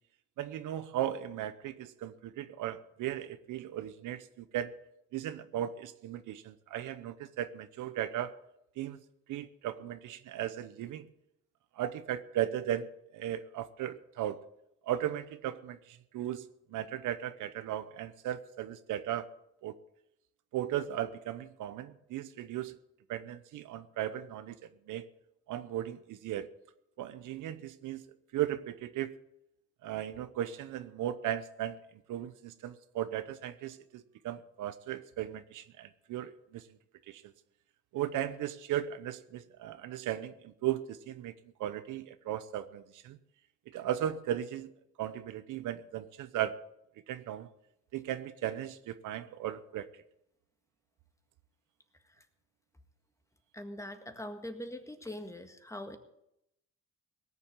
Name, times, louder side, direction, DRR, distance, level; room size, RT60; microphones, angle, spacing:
voice 1, 0.4-4.7 5.1-8.3 8.8-9.0 9.3-11.1 11.8-12.9 13.1-14.4 14.8-19.3 19.6-19.7 20.5-22.8 23.1-24.6 24.9-25.1 25.5-26.5 27.0-28.0 28.3-29.1 29.8-31.8 32.1-36.6 37.1-37.2 37.9-41.3 41.6-43.2 43.7-44.7 45.0-46.6 47.1-47.5 47.9-49.9, right 11 dB, 80° right, 13 dB, 0.9 m, -36 dB
voice 2, 53.5-56.0, left 1 dB, 10° left, 7 dB, 1.7 m, -42 dB
18.0 x 7.0 x 8.6 m, 0.81 s
cardioid pair, 90°, 30 cm